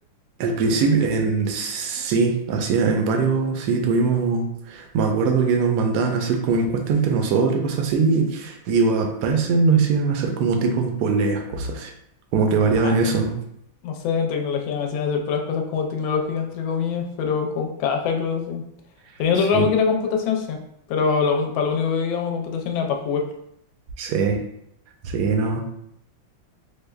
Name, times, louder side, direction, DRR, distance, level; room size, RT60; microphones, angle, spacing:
voice 1, 0.4-11.9 12.3-13.3 19.5-19.7 24.0-24.4 25.0-25.6, right 4 dB, 85° right, 3 dB, 0.8 m, -21 dB
voice 2, 13.8-18.6 19.2-20.6 20.9-23.3, left 6 dB, 75° left, 2 dB, 1.3 m, -24 dB
5.2 x 2.1 x 2.3 m, 0.75 s
omnidirectional pair, 2.3 m